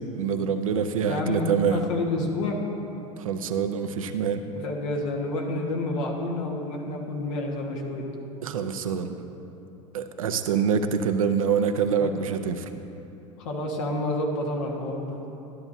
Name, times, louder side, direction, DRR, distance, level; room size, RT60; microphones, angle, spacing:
voice 1, 0.0-1.9 3.2-4.5 8.4-9.2 9.9-12.7, right 6 dB, 85° right, 8 dB, 0.6 m, -25 dB
voice 2, 1.0-2.6 4.5-8.1 12.0-12.1 13.4-15.2, left 2 dB, 75° left, 0 dB, 1.5 m, -29 dB
13.0 x 10.5 x 2.7 m, 2.9 s
hypercardioid pair, 85°, 17 cm